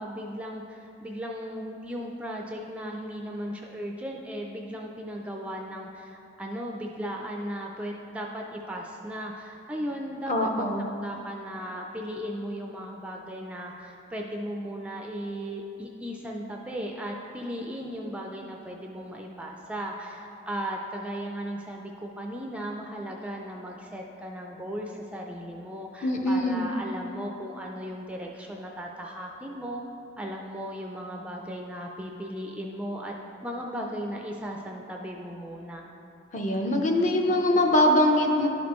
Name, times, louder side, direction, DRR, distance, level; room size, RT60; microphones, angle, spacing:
voice 1, 0.0-29.8 30.2-33.1 33.4-35.9, equal, 5° right, 0 dB, 0.3 m, -36 dB
voice 2, 10.3-10.9 26.0-26.6 36.3-38.5, left 1 dB, 40° left, 2 dB, 0.6 m, -23 dB
11.5 x 5.1 x 3.0 m, 2.8 s
head